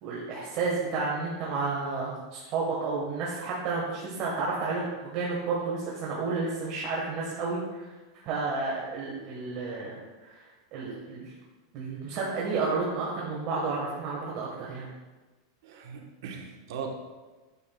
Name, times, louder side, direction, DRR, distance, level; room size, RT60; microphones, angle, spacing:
voice 1, 0.0-7.9 8.2-11.3 11.7-14.9, right 4 dB, 40° right, -5 dB, 1.4 m, -31 dB
voice 2, 15.6-16.9, right 5 dB, 65° right, 2 dB, 1.3 m, -39 dB
9.5 x 6.8 x 2.3 m, 1.2 s
supercardioid pair, 155°, 2 cm